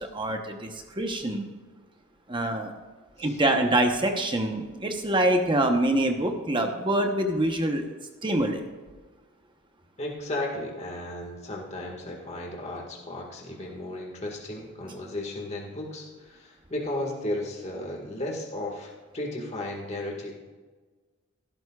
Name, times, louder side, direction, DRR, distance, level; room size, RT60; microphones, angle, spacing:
voice 1, 0.0-1.5 2.3-2.7 3.2-7.9 8.2-8.6, right 1 dB, 20° right, 4 dB, 1.0 m, -25 dB
voice 2, 10.0-20.3, left 1 dB, 30° left, -1 dB, 1.8 m, -34 dB
16.0 x 13.0 x 2.4 m, 1.3 s
head